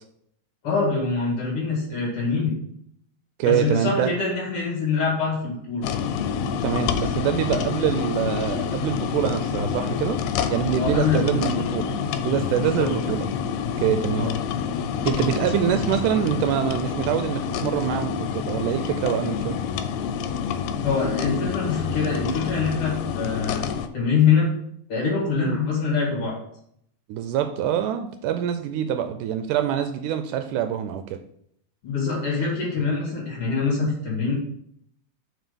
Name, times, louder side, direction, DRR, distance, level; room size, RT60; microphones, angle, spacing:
voice 1, 0.6-2.5 3.4-5.9 10.8-11.4 12.6-12.9 14.1-14.3 20.8-23.7 23.9-24.5 24.9-26.3 31.8-34.3, left 5 dB, 45° left, -4 dB, 2.7 m, -24 dB
voice 2, 3.4-4.1 6.6-10.2 10.5-11.9 12.2-13.3 13.8-14.3 15.1-19.6 25.4-25.6 27.1-31.2, right 10 dB, 80° right, 8 dB, 2.0 m, -25 dB
sound 1, 5.8-23.9, left 7 dB, 85° left, 2.3 m, -27 dB
6.1 x 4.6 x 5.2 m, 0.69 s
omnidirectional pair, 3.8 m